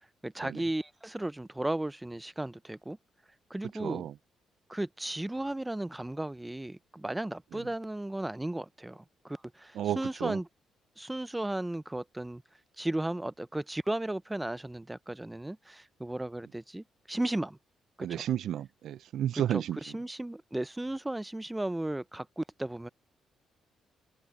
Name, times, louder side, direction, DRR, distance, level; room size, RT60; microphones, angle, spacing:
voice 1, 0.2-3.0 3.5-4.1 4.7-10.5 11.0-12.4 12.8-17.6 18.0-18.2 19.8-22.9, right 1 dB, 10° right, 0.6 m, -35 dB
voice 2, 3.7-4.1 7.5-7.6 9.7-10.4 18.0-20.0, right 11 dB, 70° right, 0.4 m, -32 dB
open air
cardioid pair, 90°, 0 cm